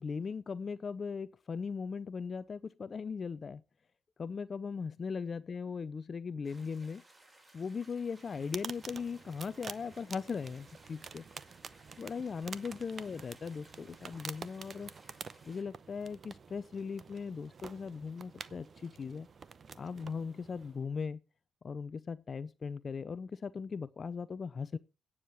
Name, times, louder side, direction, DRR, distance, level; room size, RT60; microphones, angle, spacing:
voice 1, 0.0-3.6 4.2-7.0 7.5-11.2 12.0-14.9 15.4-19.3 19.7-21.2 21.6-24.8, left 5 dB, 40° left, 0.6 m, -39 dB
sound 1, 6.4-15.6, right 1 dB, 20° right, 5.2 m, -61 dB
sound 2, 8.2-20.8, right 5 dB, 45° right, 0.7 m, -49 dB
9.3 x 7.3 x 8.1 m
cardioid pair, 90°, 0 cm